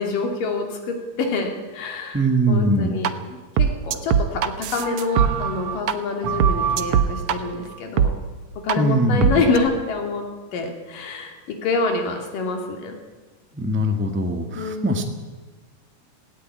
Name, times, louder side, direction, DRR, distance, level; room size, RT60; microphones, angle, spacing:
voice 1, 0.0-3.1 3.6-8.1 8.6-13.0 14.5-15.0, left 3 dB, 80° left, 3 dB, 4.3 m, -26 dB
voice 2, 2.1-3.0 8.8-9.4 13.5-15.0, right 1 dB, 10° right, 5 dB, 0.6 m, -21 dB
sound 1, 3.0-3.1 3.6-5.9 6.2-7.4 8.0-8.1 8.7-8.8 9.2-9.6, right 8 dB, 70° right, 1.3 m, -21 dB
18.0 x 16.5 x 9.4 m, 1.3 s
omnidirectional pair, 3.8 m